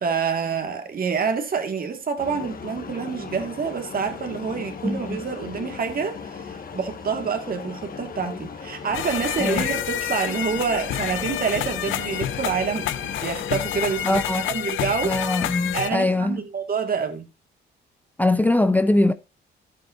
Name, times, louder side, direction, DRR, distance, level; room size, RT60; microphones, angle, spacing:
voice 1, 0.0-15.1 15.7-17.3, right 6 dB, 50° right, 2.1 m, -27 dB
sound 1, 2.2-14.1, left 6 dB, 45° left, 1.7 m, -37 dB
voice 2, 4.8-5.2 9.4-9.6 14.1-14.5 15.0-16.4 18.2-19.1, left 2 dB, 10° left, 0.5 m, -21 dB
sound 2, 8.9-15.9, left 11 dB, 80° left, 0.8 m, -28 dB
12.5 x 8.3 x 2.7 m
cardioid pair, 90°, 20 cm